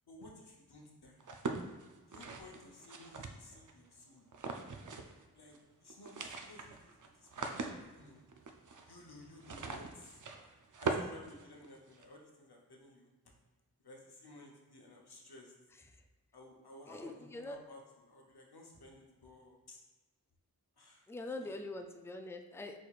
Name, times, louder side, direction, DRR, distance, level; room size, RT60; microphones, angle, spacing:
voice 1, 0.1-1.2 2.1-4.3 5.3-8.2 8.8-10.2 10.8-13.1 13.8-15.5 16.3-19.8 20.8-21.6, left 2 dB, 80° left, -1 dB, 0.9 m, -56 dB
sound 1, 1.2-3.7 4.3-5.2 5.5-5.6 5.9-12.0, right 4 dB, 55° right, 0.5 m, -42 dB
voice 2, 16.9-17.6 21.1-22.8, left 2 dB, 5° left, 5 dB, 0.3 m, -43 dB
4.6 x 4.2 x 2.4 m, 1.2 s
wide cardioid pair, 45°, 38 cm